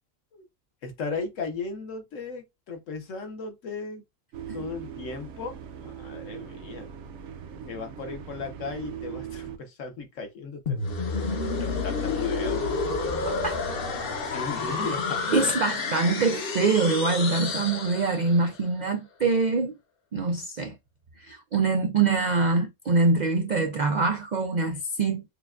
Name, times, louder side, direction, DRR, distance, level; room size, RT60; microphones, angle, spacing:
voice 1, 0.8-4.0 4.5-6.9 7.7-10.8 11.5-12.7 13.0-13.2 14.3-15.2, left 4 dB, 70° left, 1.3 m, -36 dB
sound 1, 4.3-9.6, right 8 dB, 65° right, 0.9 m, -40 dB
sound 2, 10.7-18.5, left 4 dB, 50° left, 0.9 m, -29 dB
voice 2, 13.2-13.6 15.3-19.7 20.1-20.7 21.2-25.3, right 3 dB, 80° right, 0.4 m, -24 dB
6.6 x 2.2 x 2.4 m
omnidirectional pair, 1.4 m